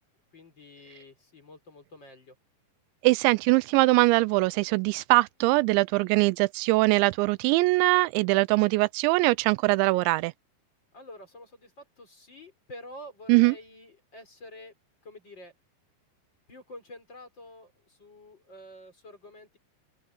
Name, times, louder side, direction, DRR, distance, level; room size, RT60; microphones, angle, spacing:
voice 1, 0.3-2.4 10.9-14.8 15.0-15.5 16.5-19.6, left 1 dB, 25° left, 5.1 m, -48 dB
voice 2, 3.0-10.3 13.3-13.6, right 23 dB, 85° right, 2.9 m, -22 dB
open air
omnidirectional pair, 5.1 m